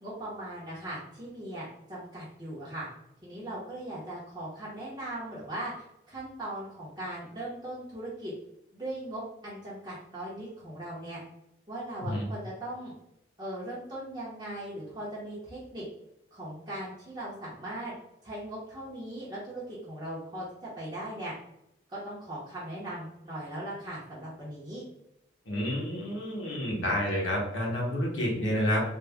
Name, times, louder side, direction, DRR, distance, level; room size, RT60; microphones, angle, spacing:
voice 1, 0.0-2.9 3.2-8.3 8.7-11.2 11.7-12.9 13.4-15.9 16.3-17.9 18.2-21.3 21.9-24.8, right 1 dB, 25° right, -9 dB, 0.8 m, -39 dB
voice 2, 25.5-28.8, equal, 90° left, -2 dB, 1.0 m, -29 dB
3.5 x 2.2 x 3.4 m, 0.83 s
head